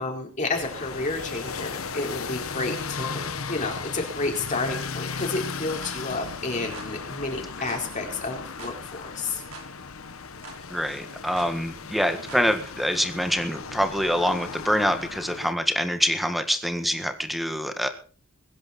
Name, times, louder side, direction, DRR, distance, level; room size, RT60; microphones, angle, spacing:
voice 1, 0.0-9.4, left 3 dB, 35° left, 1 dB, 4.3 m, -31 dB
sound 1, 0.5-15.5, left 5 dB, 90° left, 1.3 m, -36 dB
sound 2, 5.8-6.0 6.7-6.9 7.7-7.9 8.6-8.8 9.5-9.7 10.4-10.6 11.4-11.5 12.3-12.5, right 3 dB, 90° right, 5.1 m, -43 dB
voice 2, 10.7-17.9, equal, ahead, 7 dB, 1.7 m, -25 dB
22.0 x 10.5 x 4.3 m, 0.41 s
head